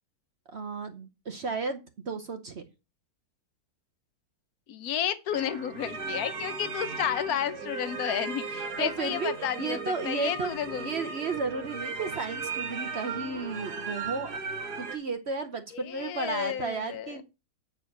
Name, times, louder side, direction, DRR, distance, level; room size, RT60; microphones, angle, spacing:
voice 1, 0.5-2.6 8.8-9.3 9.6-10.5 10.8-14.3 14.8-17.2, right 4 dB, 50° right, 0.9 m, -33 dB
voice 2, 4.7-9.8 10.0-10.9 15.7-17.2, left 10 dB, 70° left, 1.3 m, -32 dB
Welte Philharmonic Organ, 5.3-15.0, right 4 dB, 75° right, 1.7 m, -37 dB
8.6 x 4.8 x 5.9 m
omnidirectional pair, 1.7 m